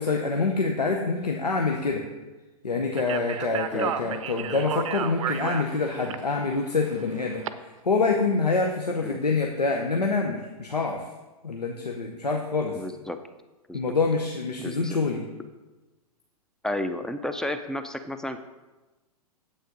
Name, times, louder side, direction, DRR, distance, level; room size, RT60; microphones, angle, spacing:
voice 1, 0.0-2.1 2.6-11.0 11.4-12.8 13.7-15.3, left 4 dB, 85° left, 2 dB, 0.9 m, -26 dB
Speech, 2.9-7.5, right 9 dB, 55° right, 0.6 m, -33 dB
voice 2, 3.7-4.1 9.0-9.2 12.7-13.2 13.7-13.8 14.6-15.0 16.6-18.5, left 1 dB, 5° left, 9 dB, 0.4 m, -32 dB
8.9 x 8.0 x 3.8 m, 1.1 s
figure-of-eight pair, 105°, 20 cm